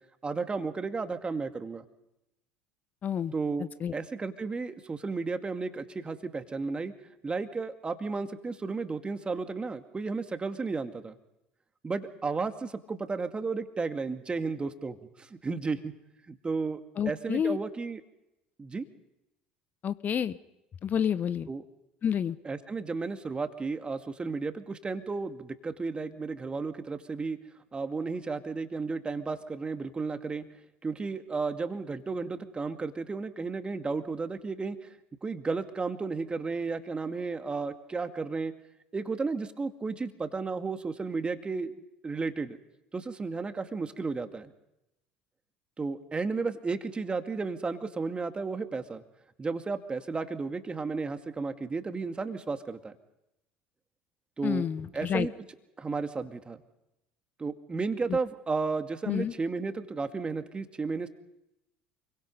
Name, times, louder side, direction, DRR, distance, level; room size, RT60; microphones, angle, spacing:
voice 1, 0.2-1.8 3.3-6.9 7.2-11.2 11.8-15.9 16.3-18.0 18.6-18.9 21.5-21.6 22.5-27.4 27.7-30.4 30.8-34.9 35.2-38.5 38.9-41.7 42.0-42.6 42.9-44.5 45.8-49.0 49.4-52.9 54.4-54.7 54.9-55.3 55.8-56.6 57.4-61.1, right 4 dB, 20° right, 8 dB, 2.1 m, -33 dB
voice 2, 3.0-3.3 3.6-3.9 17.0-17.6 19.8-20.4 20.8-21.5 22.0-22.4 54.4-55.3 58.1-58.2 59.1-59.3, left 8 dB, 40° left, 14 dB, 1.0 m, -29 dB
28.5 x 23.0 x 5.5 m, 0.89 s
figure-of-eight pair, 65°, 5 cm